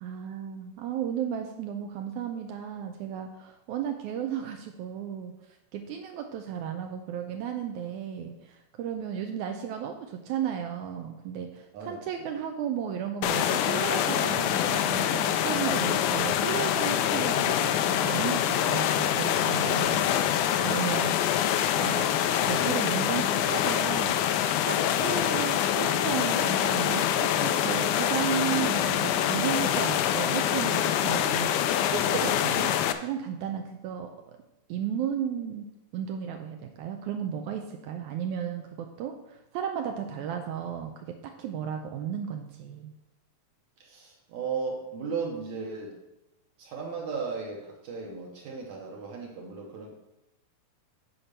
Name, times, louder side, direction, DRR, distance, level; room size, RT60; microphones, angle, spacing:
voice 1, 0.0-5.3 5.7-20.0 20.6-21.4 21.7-22.1 22.4-24.2 24.7-31.5 31.9-32.7 33.0-34.4 34.7-35.7 35.9-42.9, right 8 dB, 90° right, 4 dB, 1.7 m, -34 dB
voice 2, 11.7-12.3 20.6-21.2 25.1-25.2 43.8-46.0 46.6-49.9, right 5 dB, 65° right, 0 dB, 2.0 m, -36 dB
sound 1, 13.2-32.9, left 10 dB, 85° left, 1.7 m, -25 dB
8.9 x 4.3 x 6.6 m, 0.93 s
omnidirectional pair, 4.1 m